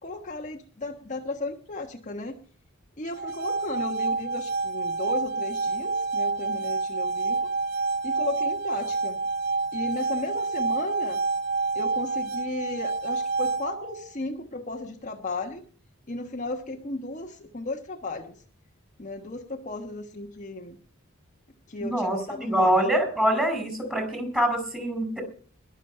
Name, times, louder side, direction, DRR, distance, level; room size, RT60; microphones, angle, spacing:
voice 1, 0.0-2.4 3.0-7.5 8.0-9.2 9.7-11.2 11.7-15.6 16.1-18.3 19.0-20.8 21.7-22.8, left 2 dB, 35° left, 2 dB, 1.3 m, -35 dB
sound 1, 3.1-14.1, right 3 dB, 55° right, 1.1 m, -28 dB
voice 2, 21.8-25.2, right 1 dB, 5° right, 7 dB, 4.8 m, -25 dB
22.0 x 7.4 x 5.5 m, 0.43 s
head